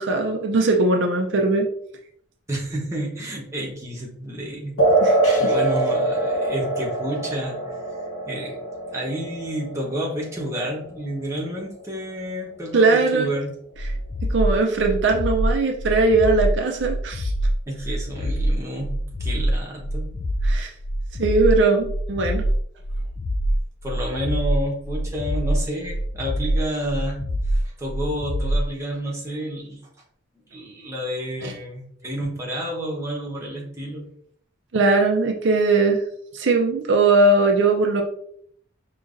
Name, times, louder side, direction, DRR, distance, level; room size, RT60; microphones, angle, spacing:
voice 1, 0.0-1.7 5.0-5.5 12.7-13.3 14.2-17.3 20.4-20.7 21.2-22.4 31.4-31.5 34.7-36.0 36.3-38.0, right 3 dB, 65° right, 2 dB, 0.5 m, -20 dB
voice 2, 2.5-4.8 5.4-7.8 8.3-8.6 8.9-13.5 17.7-20.2 23.8-29.8 30.5-34.1, equal, 15° right, -3 dB, 0.9 m, -30 dB
sound 1, 4.8-11.8, right 2 dB, 90° left, 1.3 m, -24 dB
sound 2, 13.8-28.7, right 1 dB, 40° left, 0.3 m, -25 dB
5.1 x 2.9 x 2.5 m, 0.65 s
head